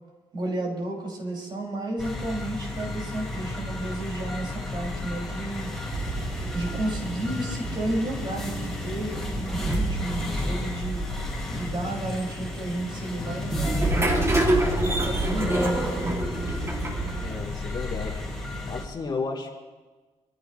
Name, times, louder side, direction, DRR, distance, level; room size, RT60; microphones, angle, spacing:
voice 1, 0.3-5.7 6.5-11.1 11.6-14.3 14.8-16.2, right 1 dB, 45° right, -2 dB, 5.8 m, -32 dB
sound 1, 2.0-18.8, left 2 dB, 5° left, 5.1 m, -33 dB
sound 2, 5.9-17.6, right 2 dB, 25° right, 2.5 m, -28 dB
voice 2, 17.2-18.2 18.6-19.6, left 4 dB, 40° left, -1 dB, 3.3 m, -33 dB
27.0 x 15.5 x 3.2 m, 1.3 s
cardioid pair, 115°, 11 cm